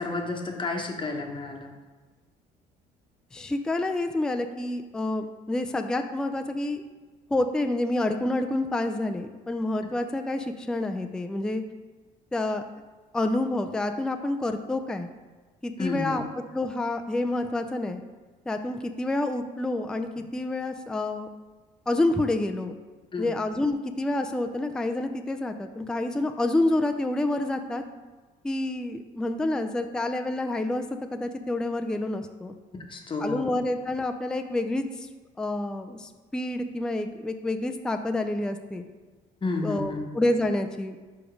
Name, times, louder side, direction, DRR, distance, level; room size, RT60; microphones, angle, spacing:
voice 1, 0.0-1.8 15.8-16.2 23.1-23.3 32.9-33.6 39.4-40.1, left 3 dB, 30° left, 2 dB, 1.0 m, -31 dB
voice 2, 3.3-6.8 7.3-11.6 12.3-12.6 13.1-15.1 15.6-16.2 16.5-18.0 18.5-21.3 21.9-22.8 23.2-27.8 28.4-30.8 31.1-32.5 33.2-35.1 35.4-38.8 39.6-41.0, left 2 dB, 5° left, 6 dB, 0.3 m, -28 dB
5.2 x 4.8 x 5.1 m, 1.3 s
cardioid pair, 110°, 17 cm